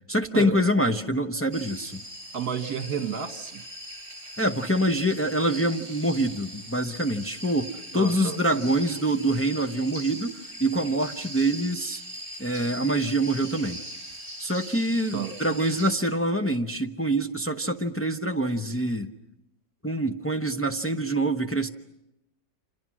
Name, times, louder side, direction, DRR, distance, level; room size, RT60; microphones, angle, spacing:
voice 1, 0.1-2.0 4.4-10.3 10.6-12.0 12.4-13.8 14.4-19.1 19.8-21.7, right 1 dB, 15° left, 4 dB, 0.5 m, -25 dB
sound 1, 1.5-15.9, right 1 dB, 25° right, 8.1 m, -41 dB
voice 2, 2.3-3.6 7.9-8.4 15.1-15.4, right 7 dB, 60° right, 8 dB, 1.9 m, -31 dB
29.5 x 26.5 x 6.2 m, 0.89 s
omnidirectional pair, 1.9 m